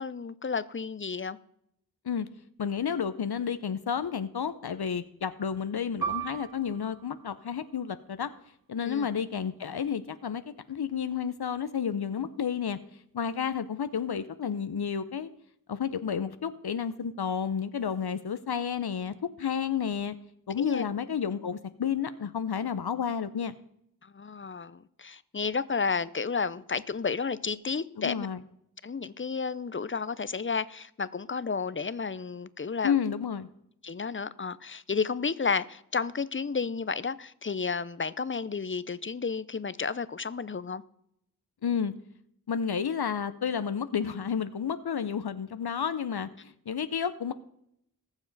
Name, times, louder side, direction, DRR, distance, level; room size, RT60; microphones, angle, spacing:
voice 1, 0.0-1.4 8.8-9.1 20.6-20.8 24.0-28.3 28.8-33.0 33.8-40.8, left 5 dB, 35° left, 0.5 m, -32 dB
voice 2, 2.6-8.3 8.7-10.4 10.7-12.8 13.1-15.3 15.7-20.1 20.5-23.5 28.0-28.4 32.8-33.5 41.6-41.9 42.5-47.3, left 7 dB, 85° left, 0.6 m, -31 dB
Piano, 6.0-11.0 11.4-11.5 12.3-12.7, right 7 dB, 70° right, 1.6 m, -40 dB
20.0 x 7.2 x 4.0 m
wide cardioid pair, 50°, 38 cm